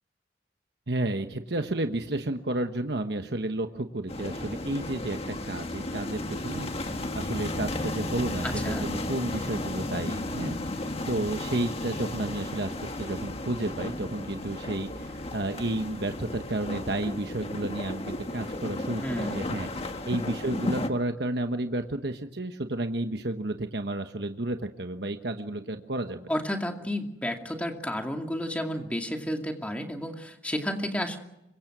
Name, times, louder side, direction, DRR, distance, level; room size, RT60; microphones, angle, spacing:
voice 1, 0.9-26.3, right 2 dB, 65° right, 6 dB, 1.2 m, -32 dB
sound 1, 4.1-20.9, left 1 dB, 35° left, 1.7 m, -34 dB
voice 2, 8.4-8.9 19.0-19.4 26.3-31.2, equal, 10° left, 3 dB, 2.4 m, -31 dB
25.5 x 23.0 x 6.1 m, 0.88 s
head